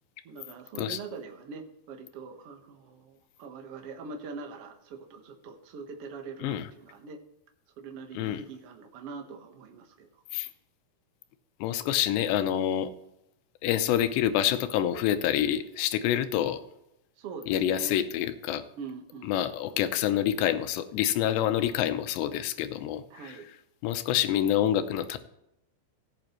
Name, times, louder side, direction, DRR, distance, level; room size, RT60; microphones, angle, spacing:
voice 1, 0.2-7.2 7.8-10.2 17.2-18.0 18.8-19.4 23.1-23.5, right 4 dB, 90° right, 4 dB, 1.3 m, -43 dB
voice 2, 11.6-12.9 13.6-16.6 17.5-18.6 19.2-23.4 23.8-25.2, left 11 dB, 90° left, 10 dB, 3.0 m, -27 dB
17.0 x 8.6 x 3.0 m, 0.82 s
omnidirectional pair, 4.8 m